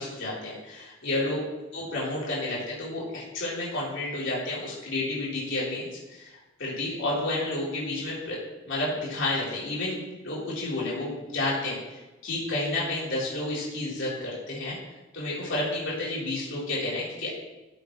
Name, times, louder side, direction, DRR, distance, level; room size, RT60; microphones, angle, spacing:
voice 1, 0.0-1.4 1.7-8.4 8.7-14.8 15.1-17.3, left 2 dB, 60° left, -7 dB, 3.7 m, -31 dB
13.5 x 8.3 x 3.2 m, 1.1 s
head